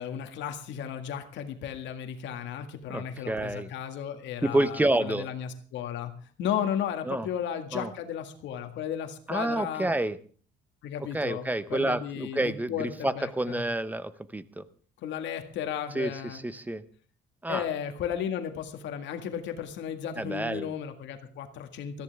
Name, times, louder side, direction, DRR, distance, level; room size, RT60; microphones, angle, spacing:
voice 1, 0.0-6.1 6.4-9.9 10.8-13.6 15.0-16.4 17.5-22.0, left 9 dB, 70° left, 6 dB, 1.9 m, -34 dB
voice 2, 2.9-3.7 4.4-5.3 7.0-7.3 7.7-7.9 9.3-10.2 11.1-14.7 15.9-16.8 17.4-17.7 20.2-20.7, right 1 dB, 10° right, 15 dB, 0.7 m, -29 dB
20.5 x 14.0 x 3.5 m, 0.42 s
cardioid pair, 135°, 19 cm